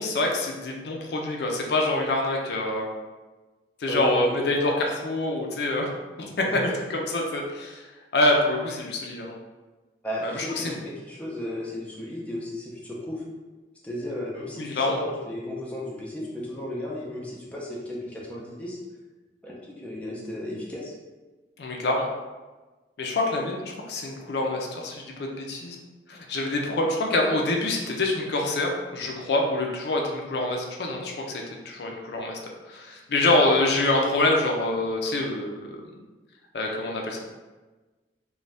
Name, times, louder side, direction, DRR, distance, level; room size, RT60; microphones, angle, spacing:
voice 1, 0.0-2.9 3.8-5.9 6.2-7.8 8.1-9.4 10.2-10.7 14.6-15.0 21.6-22.1 23.0-25.8 26.1-32.4 32.7-35.8 36.5-37.2, left 2 dB, 65° left, 1 dB, 0.4 m, -26 dB
voice 2, 3.9-4.3 6.5-6.8 10.0-13.2 13.8-18.8 19.4-20.9, left 1 dB, 10° left, -5 dB, 0.5 m, -34 dB
2.6 x 2.2 x 3.2 m, 1.2 s
head